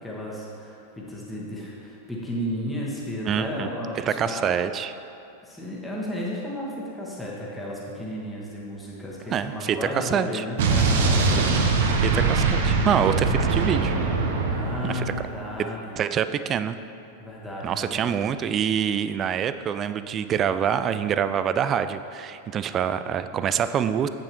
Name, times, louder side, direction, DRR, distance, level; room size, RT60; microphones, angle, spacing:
voice 1, 0.0-4.6 5.4-11.6 14.5-16.0 17.2-18.2, equal, 5° left, -6 dB, 1.5 m, -33 dB
voice 2, 3.3-3.7 4.0-4.9 9.3-10.4 12.0-13.9 14.8-15.0 16.0-16.8 17.6-24.1, right 8 dB, 30° right, 11 dB, 0.3 m, -25 dB
Explosion, 10.6-15.4, right 4 dB, 55° right, 0.8 m, -22 dB
8.7 x 8.6 x 3.1 m, 2.7 s
figure-of-eight pair, 90°, 0 cm